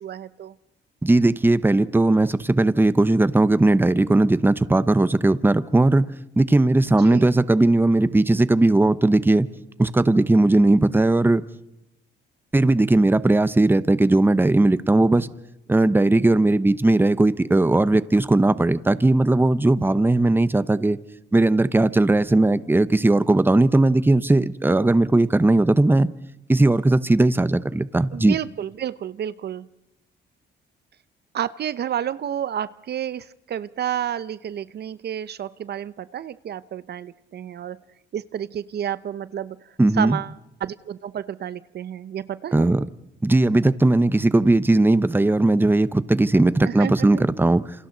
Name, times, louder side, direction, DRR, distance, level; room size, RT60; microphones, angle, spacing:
voice 1, 0.0-0.5 7.0-7.2 28.1-29.7 31.3-37.8 38.1-39.6 39.9-40.3 40.6-42.9 46.6-47.2, right 10 dB, 55° right, 0.7 m, -30 dB
voice 2, 1.0-6.1 6.4-9.5 9.8-11.4 12.5-15.3 15.7-21.0 21.3-26.1 26.5-28.4 39.8-40.2 42.5-42.8 43.2-47.6, right 2 dB, 10° right, 0.9 m, -18 dB
28.0 x 26.5 x 4.0 m
cardioid pair, 90°, 20 cm